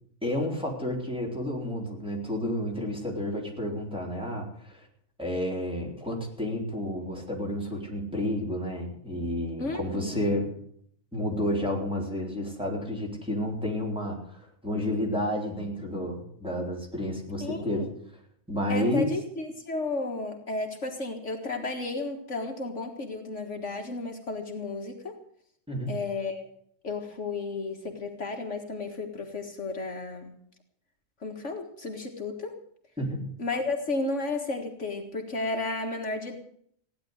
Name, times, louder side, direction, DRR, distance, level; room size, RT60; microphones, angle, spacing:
voice 1, 0.2-4.8 5.2-10.5 11.1-17.9 18.5-19.1 25.7-26.0 33.0-33.2, left 1 dB, 5° right, -2 dB, 3.9 m, -30 dB
voice 2, 9.6-10.3 17.4-17.9 18.7-25.2 25.9-26.5 26.8-30.3 31.2-32.6 33.4-36.4, left 3 dB, 60° left, 3 dB, 2.1 m, -33 dB
16.0 x 11.0 x 8.0 m, 0.64 s
omnidirectional pair, 1.4 m